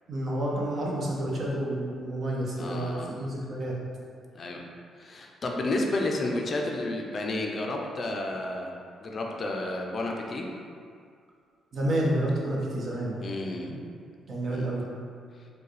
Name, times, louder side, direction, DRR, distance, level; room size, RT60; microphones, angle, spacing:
voice 1, 0.1-3.7 11.7-13.2 14.3-14.8, right 1 dB, 50° right, -4 dB, 0.9 m, -29 dB
voice 2, 2.6-3.1 4.3-4.6 5.0-8.7 9.0-10.4 13.2-13.7 14.5-14.7, left 2 dB, 45° left, 1 dB, 0.4 m, -31 dB
4.5 x 2.2 x 3.2 m, 2.2 s
cardioid pair, 90°, 0 cm